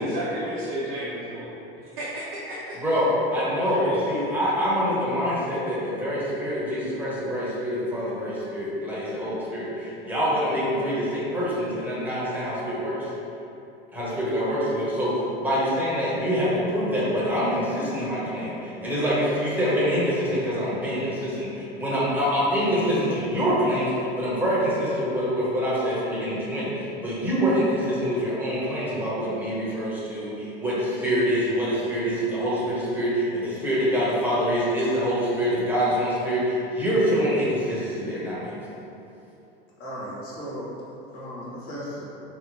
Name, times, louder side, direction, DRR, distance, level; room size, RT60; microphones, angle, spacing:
voice 1, 0.0-1.5 2.0-2.8 3.6-4.1, right 1 dB, 60° right, -9 dB, 0.8 m, -32 dB
voice 2, 2.8-13.1 13.9-38.5, equal, 5° right, -8 dB, 1.1 m, -25 dB
voice 3, 39.8-40.7 41.1-42.1, equal, 55° left, -6 dB, 1.2 m, -36 dB
2.9 x 2.1 x 4.0 m, 2.9 s
hypercardioid pair, 85°, 29 cm